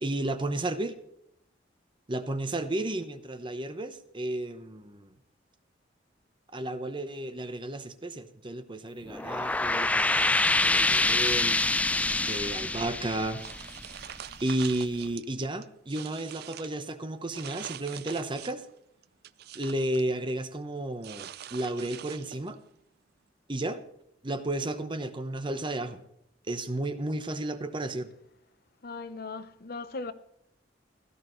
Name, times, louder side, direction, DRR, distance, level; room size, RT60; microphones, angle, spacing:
voice 1, 0.0-1.0 2.1-5.1 6.5-11.6 12.2-13.4 14.4-18.7 19.5-22.6 23.5-23.8 24.2-26.0 26.5-28.1, right 1 dB, 25° right, 0.9 m, -33 dB
sound 1, 9.1-14.3, left 2 dB, 10° left, 0.4 m, -26 dB
sound 2, 13.4-15.2 15.6-16.8 17.3-18.7 19.0-20.1 21.0-22.5, right 10 dB, 60° right, 0.4 m, -44 dB
voice 2, 28.8-30.1, left 3 dB, 55° left, 0.8 m, -38 dB
16.5 x 13.5 x 3.1 m
head